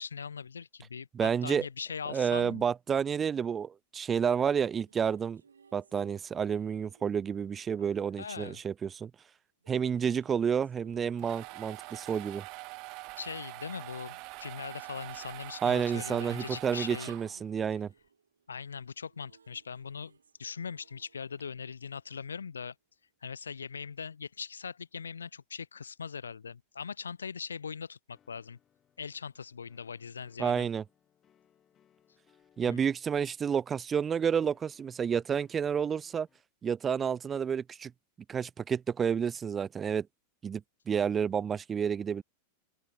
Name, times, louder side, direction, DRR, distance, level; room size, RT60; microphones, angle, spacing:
voice 1, 0.0-2.6 8.2-8.6 13.2-17.1 18.5-22.8 23.2-28.6 29.0-30.7 32.7-32.8, left 6 dB, 70° left, 0.4 m, -41 dB
voice 2, 1.1-1.7 2.1-5.4 5.7-9.1 9.7-12.4 15.6-17.9 30.4-30.8 32.6-36.3 36.6-37.9 38.3-40.1 40.4-40.6 40.9-42.2, right 7 dB, 20° right, 0.4 m, -30 dB
sound 1, 4.8-8.7 9.6-13.8 14.1-22.6, right 6 dB, 70° right, 4.1 m, -64 dB
sound 2, 10.9-17.6, right 27 dB, 40° right, 2.0 m, -44 dB
sound 3, 28.1-36.4, left 9 dB, 25° left, 6.8 m, -69 dB
open air
figure-of-eight pair, 90°, 0 cm